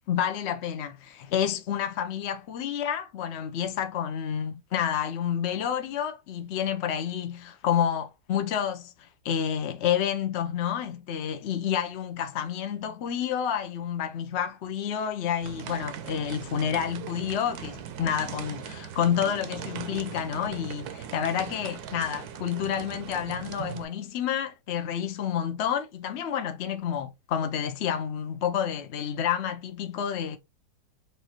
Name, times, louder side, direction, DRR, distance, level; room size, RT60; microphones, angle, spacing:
voice 1, 0.1-30.4, left 9 dB, 60° left, 0.7 m, -29 dB
sound 1, 15.4-23.8, right 9 dB, 65° right, 1.1 m, -39 dB
6.4 x 2.7 x 2.9 m
omnidirectional pair, 1.9 m